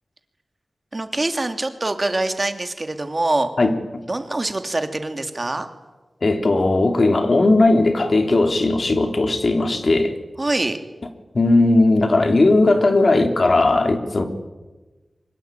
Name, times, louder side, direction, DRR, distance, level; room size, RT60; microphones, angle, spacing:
voice 1, 0.9-3.5 4.1-5.7 10.4-10.8, right 2 dB, 35° right, 7 dB, 2.8 m, -24 dB
voice 2, 6.2-10.1 11.3-14.2, left 2 dB, 55° left, 5 dB, 3.4 m, -17 dB
24.5 x 21.5 x 9.2 m, 1.2 s
wide cardioid pair, 65°, 0 cm